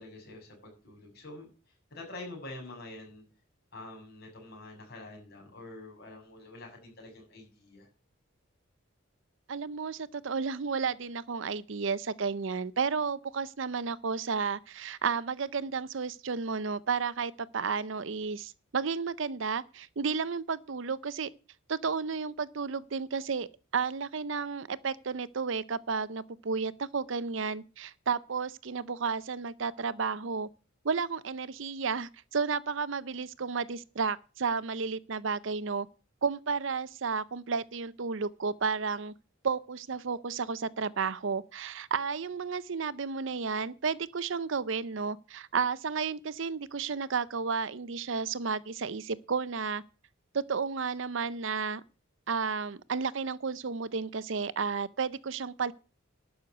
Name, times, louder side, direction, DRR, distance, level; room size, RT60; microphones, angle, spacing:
voice 1, 0.0-1.5 1.9-3.3 3.7-7.9, left 2 dB, 50° left, 7.1 m, -46 dB
voice 2, 9.5-21.3 21.7-30.5 30.8-35.9 36.2-39.1 39.4-49.8 50.3-51.8 52.3-55.7, right 5 dB, 65° right, 0.6 m, -32 dB
12.0 x 6.4 x 8.0 m
head